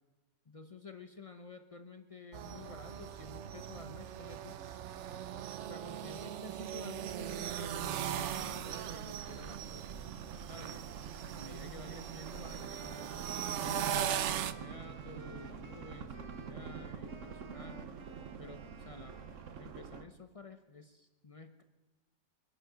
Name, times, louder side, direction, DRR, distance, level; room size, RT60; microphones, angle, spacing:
voice 1, 0.4-4.6 5.6-9.9 10.5-10.9 11.3-17.9 18.4-19.2 19.6-21.6, left 3 dB, 55° left, 7 dB, 0.3 m, -51 dB
sound 1, 2.3-14.5, right 10 dB, 80° right, 0.6 m, -39 dB
sound 2, 7.2-20.0, right 6 dB, 55° right, 1.0 m, -47 dB
Wind instrument woodwind instrument, 11.8-19.9, right 3 dB, 30° right, 0.5 m, -56 dB
24.0 x 11.0 x 5.0 m, 1.1 s
omnidirectional pair, 1.9 m